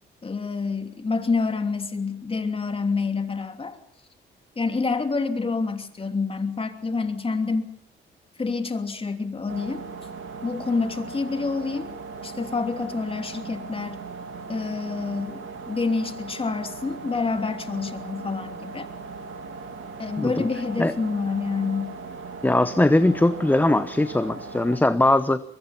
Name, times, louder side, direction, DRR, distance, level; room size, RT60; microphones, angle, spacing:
voice 1, 0.2-3.8 4.6-7.7 8.4-9.9 10.4-11.9 12.2-14.0 14.5-18.9 20.0-22.0, left 4 dB, 30° left, 6 dB, 2.9 m, -27 dB
sound 1, 9.5-24.8, right 4 dB, 80° right, 2.4 m, -38 dB
voice 2, 22.4-25.4, left 1 dB, 10° left, 12 dB, 0.9 m, -20 dB
23.0 x 22.5 x 5.8 m, 0.70 s
cardioid pair, 90°, 20 cm